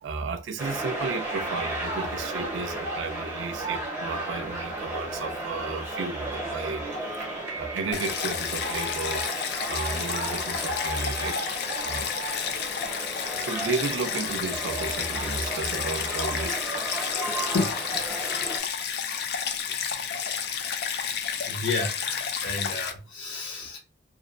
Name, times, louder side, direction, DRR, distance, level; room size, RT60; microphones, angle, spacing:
voice 1, 0.0-6.8 7.2-7.3 7.6-9.2 9.7-11.5 11.8-12.1 12.5-12.6 13.4-16.6 17.2-17.4 19.1-19.2 19.9-20.0, right 4 dB, 70° right, 0.4 m, -33 dB
sound 1, 0.6-18.6, right 1 dB, 10° right, 0.7 m, -34 dB
Stream, 7.9-22.9, left 7 dB, 55° left, 0.3 m, -31 dB
voice 2, 21.5-23.8, left 3 dB, 70° left, 0.9 m, -31 dB
2.6 x 2.0 x 2.4 m
head